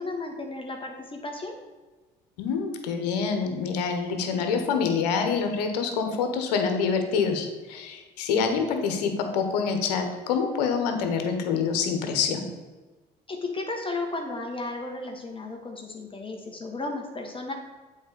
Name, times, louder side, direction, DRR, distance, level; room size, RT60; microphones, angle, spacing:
voice 1, 0.0-1.6 13.3-17.5, left 2 dB, 25° left, 2 dB, 1.6 m, -34 dB
voice 2, 2.4-12.5, left 5 dB, 80° left, 6 dB, 1.3 m, -26 dB
8.0 x 4.5 x 6.9 m, 1.3 s
hypercardioid pair, 70°, 20 cm